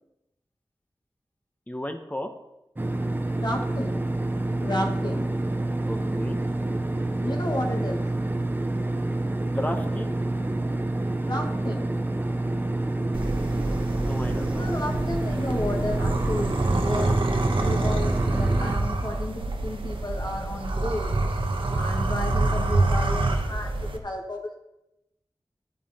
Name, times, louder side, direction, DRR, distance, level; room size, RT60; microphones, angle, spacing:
voice 1, 1.7-2.3 5.9-6.4 9.4-10.2 14.0-14.7, left 1 dB, 15° left, 5 dB, 1.0 m, -34 dB
sound 1, 2.8-18.8, right 2 dB, 20° right, 0.8 m, -28 dB
voice 2, 3.4-4.1 4.6-5.3 7.2-8.0 11.2-11.9 14.5-17.2 17.5-21.1 21.7-24.6, left 1 dB, 50° left, 1 dB, 1.8 m, -32 dB
sound 2, 13.1-24.0, right 2 dB, 75° right, 1.2 m, -26 dB
11.5 x 9.2 x 4.3 m, 0.89 s
wide cardioid pair, 65°, 9 cm